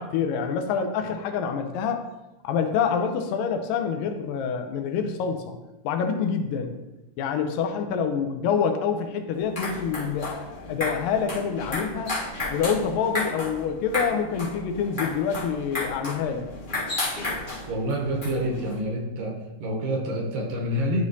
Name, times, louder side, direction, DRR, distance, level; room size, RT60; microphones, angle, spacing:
voice 1, 0.0-2.0 2.4-5.6 5.8-6.8 7.2-12.1 12.5-16.5, left 6 dB, 85° left, 6 dB, 2.3 m, -26 dB
sound 1, 9.3-18.8, left 2 dB, 40° left, 0.7 m, -33 dB
voice 2, 17.7-21.1, equal, 85° right, 0 dB, 2.7 m, -27 dB
11.0 x 5.0 x 2.7 m, 1.0 s
omnidirectional pair, 3.9 m